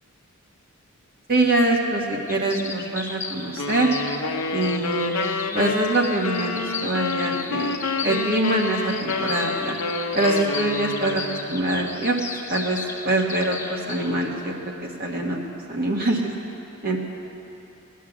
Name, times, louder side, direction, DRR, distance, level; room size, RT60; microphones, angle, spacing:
voice 1, 1.3-3.9 4.5-7.8 8.0-9.8 10.1-11.2 11.5-12.2 12.5-12.8 13.0-15.4 15.7-16.3 16.8-17.0, right 2 dB, 45° right, -1 dB, 1.5 m, -24 dB
sound 1, 2.3-14.1, left 4 dB, 15° left, 1.2 m, -35 dB
sound 2, 3.6-11.5, left 3 dB, 65° left, 0.8 m, -28 dB
18.5 x 10.0 x 7.1 m, 2.9 s
head